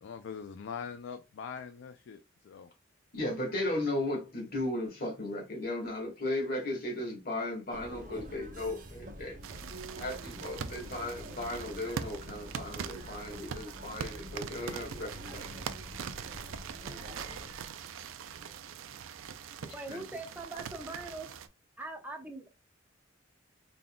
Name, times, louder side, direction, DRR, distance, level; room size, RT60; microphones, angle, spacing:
voice 1, 0.0-2.2 2.5-2.7, left 6 dB, 65° left, 0.3 m, -42 dB
voice 2, 3.1-9.4 10.0-15.5 19.9-20.1, left 1 dB, 50° left, 1.7 m, -36 dB
sound 1, 7.7-17.5, right 1 dB, 45° right, 0.9 m, -46 dB
sound 2, 9.4-21.5, right 7 dB, 80° right, 0.4 m, -42 dB
voice 3, 19.7-21.3 21.8-22.5, right 2 dB, 10° right, 0.8 m, -41 dB
3.8 x 3.7 x 2.2 m
head